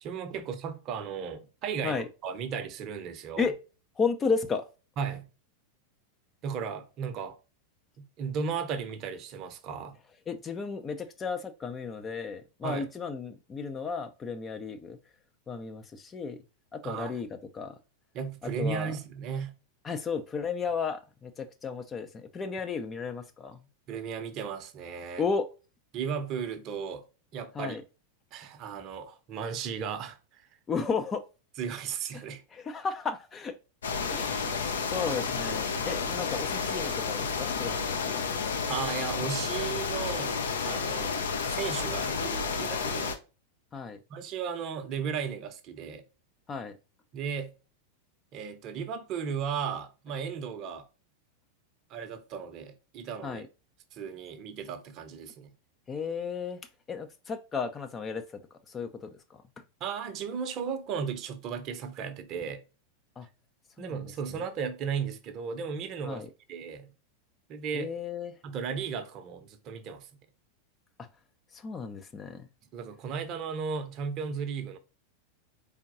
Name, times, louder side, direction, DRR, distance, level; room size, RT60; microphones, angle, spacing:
voice 1, 0.0-3.5 5.0-5.3 6.4-7.4 8.0-10.0 12.6-12.9 16.8-17.2 18.1-19.6 23.9-25.3 25.9-27.0 27.3-27.8 28.3-30.5 31.6-32.4 38.6-40.4 40.6-41.1 41.5-43.2 44.1-46.0 47.1-47.5 48.3-50.9 51.9-53.4 53.9-55.5 59.8-62.6 63.8-66.2 66.5-66.9 67.5-67.9 68.4-70.1 72.7-74.8, right 6 dB, 35° right, 0.7 m, -35 dB
voice 2, 4.0-4.6 10.3-15.0 15.5-16.4 16.7-17.3 17.5-17.8 18.4-18.9 19.8-23.6 25.2-25.5 27.5-27.8 30.7-31.2 32.5-33.6 34.1-34.6 34.9-38.2 43.7-44.0 46.5-46.7 53.2-53.4 55.9-56.6 56.9-58.2 58.7-59.1 63.2-63.3 63.8-64.0 66.0-66.3 67.7-68.4 71.5-72.5, left 5 dB, 20° left, 0.5 m, -33 dB
sound 1, 33.8-43.2, left 5 dB, 65° left, 0.7 m, -31 dB
4.5 x 3.5 x 2.6 m
figure-of-eight pair, 90°, 0 cm